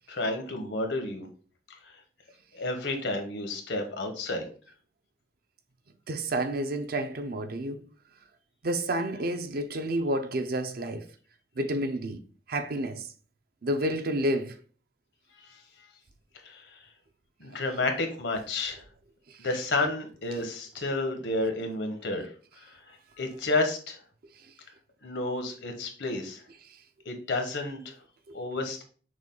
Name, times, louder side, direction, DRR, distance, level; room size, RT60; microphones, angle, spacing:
voice 1, 0.1-1.3 2.5-4.5 16.4-16.6 17.4-18.8 19.4-22.3 23.2-24.0 25.0-26.4 27.0-27.9 28.3-28.8, left 2 dB, 85° left, 1.1 m, -30 dB
voice 2, 6.1-7.8 8.6-11.0 11.6-12.2 12.5-13.1 13.6-14.6 20.3-20.4 28.3-28.4, right 1 dB, 55° right, 0.6 m, -30 dB
6.2 x 2.3 x 3.8 m
head